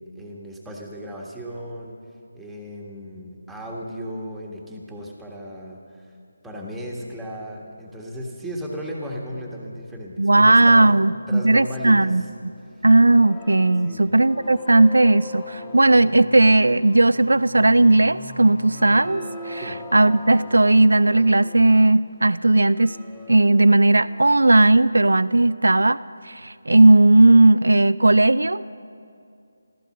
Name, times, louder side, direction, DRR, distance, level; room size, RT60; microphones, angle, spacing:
voice 1, 0.0-2.0 2.3-6.1 6.4-11.0 11.3-12.1 13.8-14.1 19.6-19.8, equal, 5° right, -3 dB, 1.5 m, -35 dB
voice 2, 10.2-12.2 12.8-23.0 23.3-26.0 26.2-28.7, right 2 dB, 80° right, 17 dB, 0.3 m, -16 dB
sound 1, 12.9-16.7 18.2-18.3 18.5-22.0 22.5-24.7, left 1 dB, 10° left, 1.0 m, -41 dB
sound 2, 15.6-20.1, left 1 dB, 65° left, 1.7 m, -41 dB
15.0 x 14.0 x 6.6 m, 2.4 s
figure-of-eight pair, 160°, 0 cm